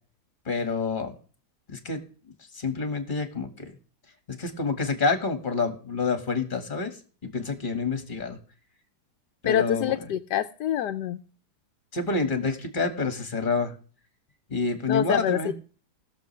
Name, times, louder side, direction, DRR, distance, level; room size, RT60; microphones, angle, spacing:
voice 1, 0.5-1.1 1.7-2.0 2.5-3.7 4.3-6.9 7.2-8.4 9.4-9.9 11.9-13.7 14.5-15.5, left 4 dB, 30° left, 8 dB, 2.1 m, -28 dB
voice 2, 9.4-11.2 14.9-15.5, left 11 dB, 90° left, 8 dB, 1.3 m, -26 dB
21.0 x 7.0 x 3.3 m, 0.39 s
omnidirectional pair, 1.7 m